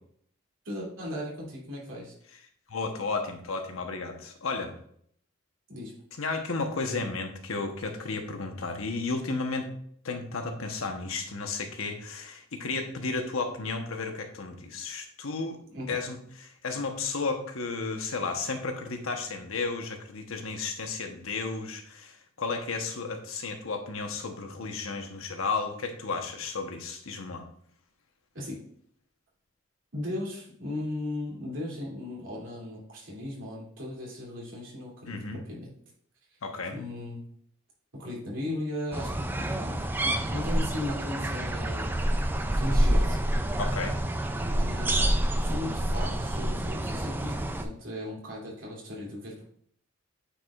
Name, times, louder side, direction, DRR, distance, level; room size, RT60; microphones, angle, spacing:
voice 1, 0.6-2.1 5.7-5.9 15.7-16.0 28.3-28.6 29.9-35.7 36.7-37.2 37.9-42.0 42.5-43.2 44.6-49.4, left 1 dB, 70° right, -5 dB, 2.8 m, -37 dB
voice 2, 2.7-4.7 6.2-9.7 10.0-15.6 15.9-27.4 35.1-35.4 36.4-36.7 43.6-44.0, left 4 dB, 85° left, 4 dB, 1.0 m, -33 dB
sound 1, 38.9-47.6, right 1 dB, 10° right, 0.3 m, -28 dB
8.8 x 4.8 x 2.4 m, 0.64 s
head